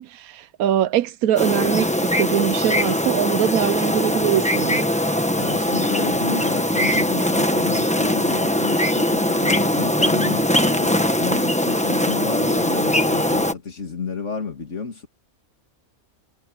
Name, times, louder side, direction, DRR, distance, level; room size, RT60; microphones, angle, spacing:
voice 1, 0.0-4.8, right 10 dB, 85° right, 1.1 m, -22 dB
sound 1, 1.4-13.5, left 1 dB, 5° left, 1.1 m, -21 dB
voice 2, 5.4-15.1, left 5 dB, 55° left, 2.8 m, -31 dB
omnidirectional pair, 1.5 m